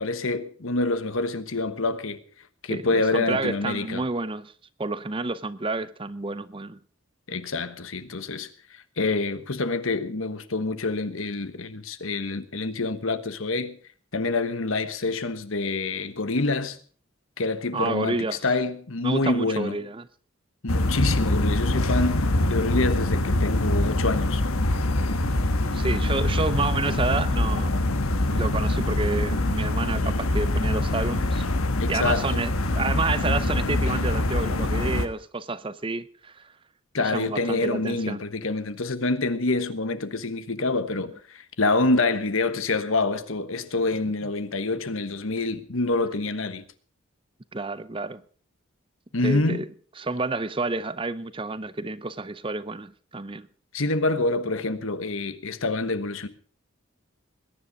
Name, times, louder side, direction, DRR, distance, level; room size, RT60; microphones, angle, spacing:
voice 1, 0.0-2.2 2.6-4.0 7.3-13.8 14.1-16.8 17.4-19.8 20.6-24.4 31.8-32.3 36.9-46.7 49.1-49.6 53.7-56.3, left 3 dB, 75° left, 1.3 m, -27 dB
voice 2, 2.7-4.5 4.8-6.8 17.7-18.4 19.0-20.1 25.7-27.8 28.3-31.5 31.9-36.5 37.0-38.2 47.5-48.2 49.2-49.7 50.0-53.5, right 3 dB, 25° right, 0.6 m, -29 dB
sound 1, 20.7-35.1, left 1 dB, 90° left, 1.5 m, -24 dB
21.0 x 10.0 x 5.3 m
head